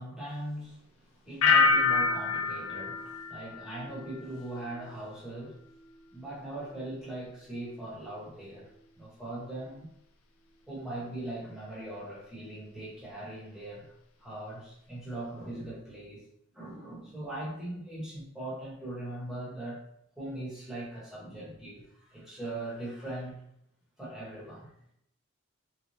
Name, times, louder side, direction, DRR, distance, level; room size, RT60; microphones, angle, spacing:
voice 1, 0.0-5.6 6.1-8.7 9.0-9.9 10.7-13.9 14.2-16.2 16.5-19.8 20.2-23.4 24.0-24.7, right 1 dB, ahead, -8 dB, 1.1 m, -40 dB
sound 1, 1.4-4.2 4.6-5.1, left 4 dB, 80° left, 0.4 m, -27 dB
3.2 x 2.2 x 2.7 m, 0.71 s
head